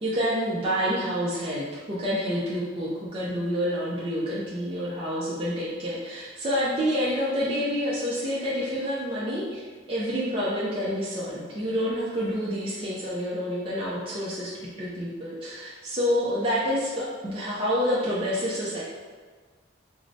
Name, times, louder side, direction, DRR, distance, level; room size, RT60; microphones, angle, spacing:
voice 1, 0.0-14.5 14.8-18.8, equal, 25° right, -8 dB, 0.4 m, -28 dB
4.6 x 2.0 x 2.6 m, 1.5 s
head